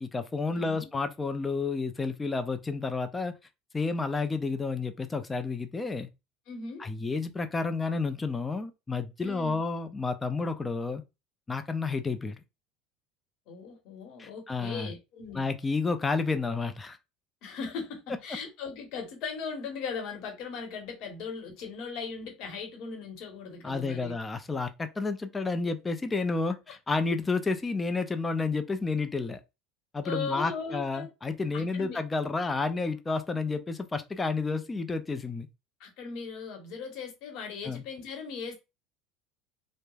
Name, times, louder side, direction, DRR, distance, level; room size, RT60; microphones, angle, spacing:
voice 1, 0.0-3.3 3.7-6.1 6.8-11.0 11.5-12.4 14.2-14.9 15.3-17.0 23.6-29.4 29.9-35.5 37.6-37.8, left 4 dB, 20° left, 0.5 m, -30 dB
voice 2, 0.5-0.9 6.5-6.9 9.2-9.6 13.5-15.5 17.4-24.1 30.0-31.1 31.5-32.0 35.8-38.5, left 5 dB, 60° left, 1.0 m, -38 dB
3.1 x 2.1 x 2.3 m
hypercardioid pair, 80°, 0 cm